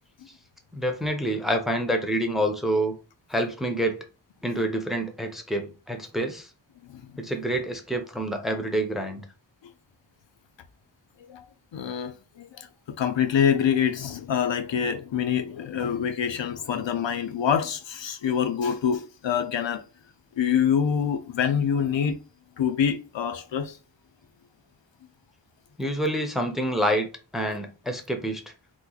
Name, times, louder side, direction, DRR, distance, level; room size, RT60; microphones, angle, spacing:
voice 1, 0.7-2.9 3.3-4.0 4.4-6.5 7.2-9.2 25.8-27.1 27.3-28.4, right 1 dB, ahead, 0.6 m, -27 dB
voice 2, 11.7-19.8 20.4-22.2 22.6-23.8, left 8 dB, 70° left, 0.5 m, -26 dB
3.0 x 2.1 x 3.8 m
wide cardioid pair, 70°, 46 cm